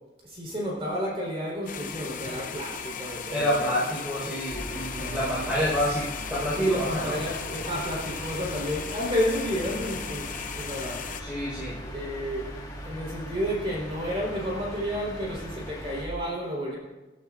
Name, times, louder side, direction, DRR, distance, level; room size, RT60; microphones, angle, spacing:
voice 1, 0.2-3.7 5.0-5.3 6.6-11.0 11.9-12.5 12.8-16.8, equal, 35° right, -3 dB, 4.1 m, -31 dB
sound 1, 1.7-11.2, left 6 dB, 50° left, 0.8 m, -37 dB
voice 2, 3.3-7.1 11.2-11.8, equal, 5° right, -9 dB, 4.8 m, -28 dB
sound 2, 4.5-16.1, equal, 20° left, 1.7 m, -40 dB
19.5 x 13.0 x 2.6 m, 1.1 s
head